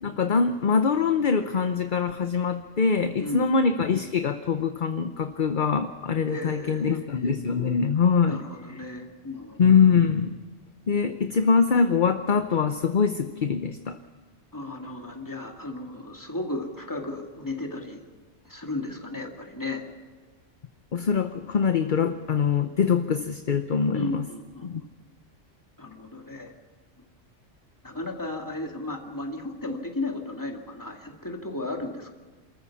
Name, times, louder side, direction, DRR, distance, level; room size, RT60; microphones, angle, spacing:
voice 1, 0.0-8.4 9.6-10.3 10.9-14.0 20.9-24.3 24.6-24.8, left 6 dB, 45° left, 8 dB, 0.9 m, -23 dB
voice 2, 3.2-3.5 6.3-7.3 8.2-9.8 14.5-18.0 18.4-19.8 23.9-24.9 25.8-26.5 27.0-27.1 27.8-32.1, left 2 dB, 15° left, 1 dB, 2.3 m, -35 dB
27.5 x 14.0 x 7.2 m, 1.4 s
omnidirectional pair, 1.3 m